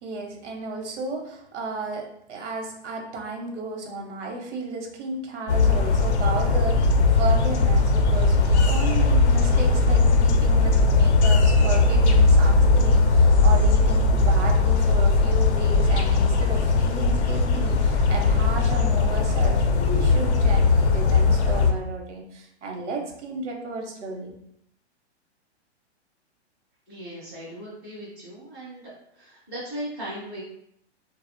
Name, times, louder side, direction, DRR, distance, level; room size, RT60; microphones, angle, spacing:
voice 1, 0.0-24.3, right 3 dB, 80° right, 2 dB, 0.8 m, -33 dB
sound 1, 5.5-21.7, left 3 dB, 70° left, 0.5 m, -19 dB
voice 2, 26.9-28.8 29.1-30.4, equal, ahead, -15 dB, 0.4 m, -37 dB
2.7 x 2.0 x 2.5 m, 0.74 s
hypercardioid pair, 170°, 35 cm